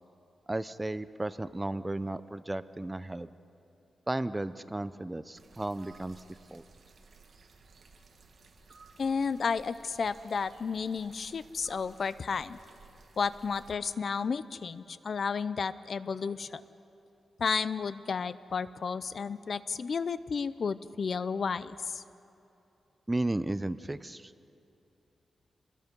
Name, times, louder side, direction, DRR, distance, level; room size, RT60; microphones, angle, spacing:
voice 1, 0.5-3.3 4.1-6.2 6.5-6.6 23.1-24.3, right 2 dB, 15° right, 14 dB, 0.5 m, -34 dB
sound 1, 5.3-13.7, right 4 dB, 55° right, 1.9 m, -57 dB
voice 2, 9.0-12.6 13.2-16.6 17.4-22.0, left 5 dB, 50° left, 15 dB, 0.5 m, -32 dB
26.5 x 21.0 x 5.3 m, 2.8 s
wide cardioid pair, 140°, 0 cm